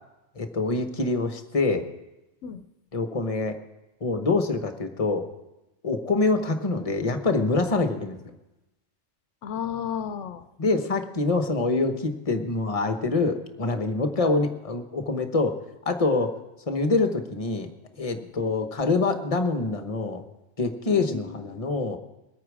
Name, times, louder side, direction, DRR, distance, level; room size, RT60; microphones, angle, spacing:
voice 1, 0.3-1.8 2.9-3.6 4.0-5.2 5.8-8.2 10.6-15.5 15.8-16.3 16.7-17.7 18.0-20.2 20.6-22.0, left 3 dB, 30° left, 6 dB, 1.2 m, -25 dB
voice 2, 9.4-10.5 18.2-18.3 20.9-21.7, left 8 dB, 85° left, 10 dB, 1.0 m, -34 dB
21.0 x 8.9 x 4.8 m, 1.0 s
omnidirectional pair, 1.2 m